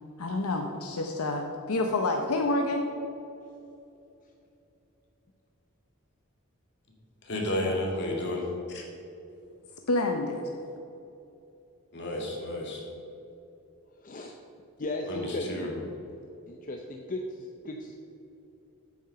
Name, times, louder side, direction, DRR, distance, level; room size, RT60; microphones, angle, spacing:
voice 1, 0.2-2.9 9.9-10.5, left 2 dB, 75° left, 4 dB, 0.7 m, -28 dB
voice 2, 7.2-8.8 11.9-12.8 15.1-15.7, left 1 dB, 55° left, -1 dB, 2.1 m, -32 dB
voice 3, 14.0-14.3 14.8-15.8 16.5-18.0, left 2 dB, 40° left, 2 dB, 0.6 m, -36 dB
8.7 x 6.5 x 6.7 m, 2.8 s
head